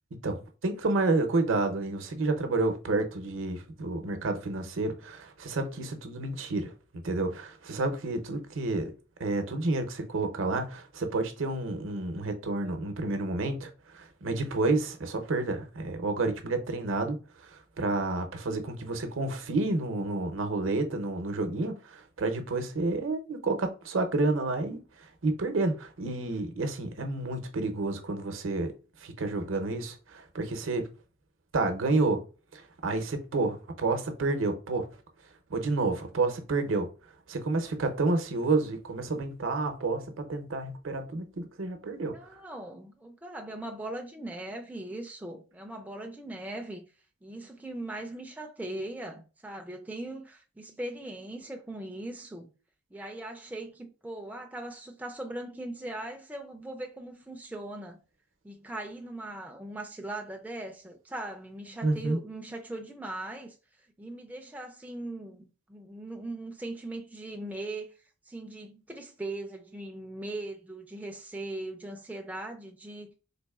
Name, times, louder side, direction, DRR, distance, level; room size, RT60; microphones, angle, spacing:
voice 1, 0.1-6.7 7.0-8.9 9.2-17.2 17.8-24.8 25.2-28.7 29.0-30.9 31.5-32.2 32.5-34.9 35.5-36.9 37.3-42.2 61.8-62.2, right 2 dB, 75° right, 0.7 m, -30 dB
voice 2, 42.0-46.9 47.2-52.5 52.9-58.0 58.4-63.6 64.0-67.9 68.3-73.1, right 1 dB, 10° right, 0.3 m, -39 dB
3.9 x 2.9 x 2.3 m
head